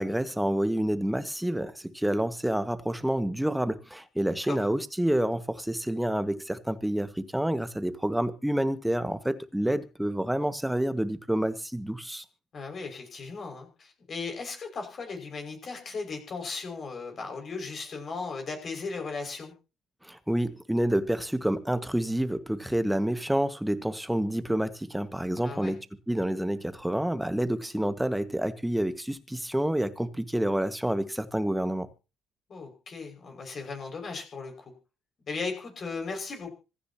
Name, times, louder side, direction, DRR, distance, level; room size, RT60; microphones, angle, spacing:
voice 1, 0.0-12.2 20.0-31.9, right 1 dB, 5° right, 1.7 m, -28 dB
voice 2, 12.5-19.5 25.4-25.7 32.5-34.7 35.3-36.5, left 4 dB, 40° left, 6.0 m, -37 dB
26.0 x 10.0 x 2.9 m
figure-of-eight pair, 55°, 0 cm